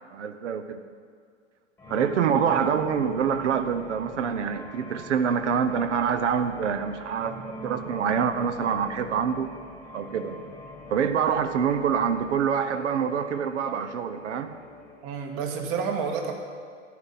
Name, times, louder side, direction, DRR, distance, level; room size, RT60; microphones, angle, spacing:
voice 1, 0.1-0.8 1.9-9.5 9.9-10.4 10.9-14.5, right 7 dB, 65° right, 9 dB, 1.0 m, -26 dB
sound 1, 1.8-15.0, equal, 5° left, 1.4 m, -44 dB
voice 2, 15.0-16.3, right 6 dB, 40° right, 4 dB, 1.7 m, -29 dB
14.0 x 10.5 x 4.1 m, 2.1 s
hypercardioid pair, 110°, 38 cm